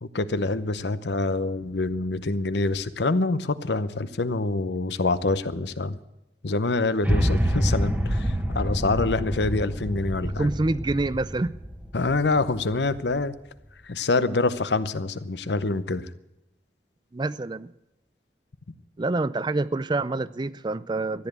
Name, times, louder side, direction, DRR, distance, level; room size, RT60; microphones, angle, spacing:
voice 1, 0.0-6.0 6.4-10.5 11.9-13.3 13.8-16.1, left 3 dB, 70° left, 0.8 m, -26 dB
sound 1, 7.0-13.2, equal, 10° right, 1.2 m, -27 dB
voice 2, 10.2-11.5 17.1-17.7 19.0-21.3, right 2 dB, 25° right, 0.4 m, -27 dB
14.0 x 10.5 x 8.1 m
head